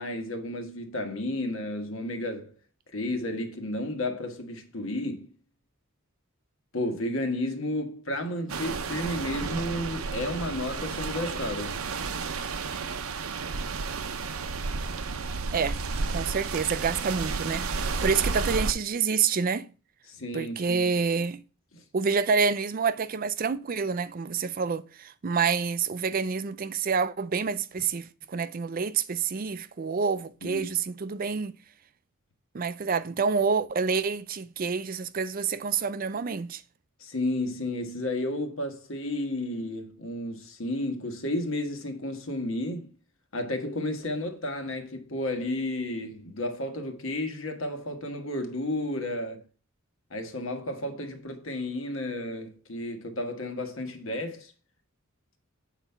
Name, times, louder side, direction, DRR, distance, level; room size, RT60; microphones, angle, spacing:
voice 1, 0.0-2.5 2.9-5.3 6.7-11.8 18.0-18.1 20.1-20.9 21.7-21.8 30.4-30.7 37.0-42.9 43.3-49.4 50.1-54.5, left 1 dB, 70° left, 1.6 m, -32 dB
sound 1, 8.5-18.7, right 4 dB, 90° right, 0.7 m, -32 dB
voice 2, 16.1-19.7 20.3-21.4 21.9-31.5 32.5-36.6, right 5 dB, 40° right, 0.4 m, -28 dB
8.0 x 4.1 x 5.7 m
head